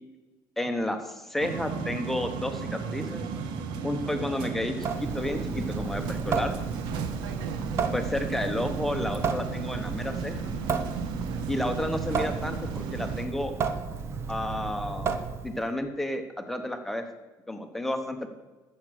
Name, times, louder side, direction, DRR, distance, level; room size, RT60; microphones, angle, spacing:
voice 1, 0.6-3.2 3.8-6.6 7.9-10.6 11.5-13.5 14.3-16.2 16.5-17.0 17.5-18.3, left 1 dB, 5° left, 6 dB, 1.0 m, -31 dB
sound 1, 1.4-13.3, right 5 dB, 85° right, 1.3 m, -35 dB
Water tap faucet / Sink (filling or washing) / Drip, 4.8-15.7, right 5 dB, 35° right, 0.9 m, -33 dB
14.0 x 7.4 x 6.4 m, 1.2 s
cardioid pair, 170°, 8 cm